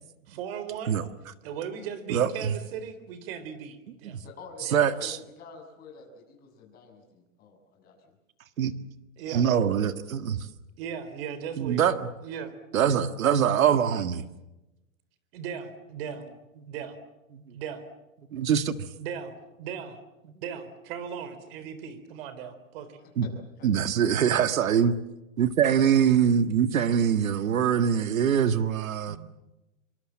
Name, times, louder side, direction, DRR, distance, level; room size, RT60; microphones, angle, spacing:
voice 1, 0.3-0.9 1.4-4.2 4.6-4.8 9.2-9.5 10.8-11.9 12.2-12.5 15.3-16.2 16.6-17.0 17.5-17.8 19.0-20.0 20.4-23.0 29.1-29.2, right 7 dB, 45° right, 4.0 m, -37 dB
voice 2, 2.1-2.5 4.0-4.1 4.7-5.2 8.6-8.7 9.3-10.4 11.6-12.1 12.7-14.2 17.4-17.5 18.3-18.7 23.2-23.3 23.6-24.9 25.4-29.2, right 8 dB, 80° right, 1.9 m, -23 dB
voice 3, 4.2-8.1 18.6-18.8 23.0-23.3 23.6-23.7, left 4 dB, 20° left, 6.9 m, -48 dB
26.0 x 24.5 x 7.6 m
hypercardioid pair, 155°, 40 cm